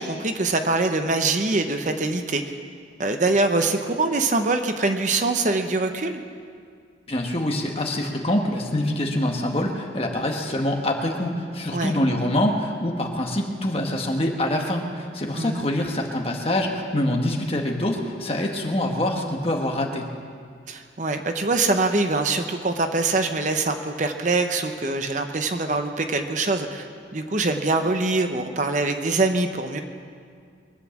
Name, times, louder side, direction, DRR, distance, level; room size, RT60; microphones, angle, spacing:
voice 1, 0.0-2.4 3.0-6.2 11.7-11.9 15.3-15.6 20.7-26.9 27.1-29.8, right 3 dB, 40° right, 6 dB, 0.8 m, -24 dB
voice 2, 7.1-20.0, left 1 dB, 30° left, 2 dB, 1.5 m, -25 dB
23.0 x 8.3 x 7.2 m, 2.1 s
head